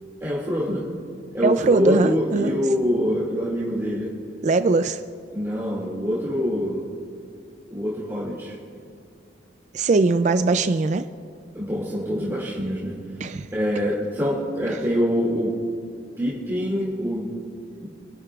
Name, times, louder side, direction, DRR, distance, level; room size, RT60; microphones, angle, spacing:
voice 1, 0.2-0.8 1.3-4.1 5.3-6.8 7.7-8.6 11.5-13.0 13.5-15.5 16.2-17.3 17.8-17.9, equal, 15° right, -7 dB, 2.2 m, -25 dB
voice 2, 1.4-2.6 4.4-5.0 9.7-11.1 13.2-13.5, right 3 dB, 40° right, 10 dB, 0.3 m, -20 dB
26.5 x 11.0 x 2.4 m, 2.5 s
head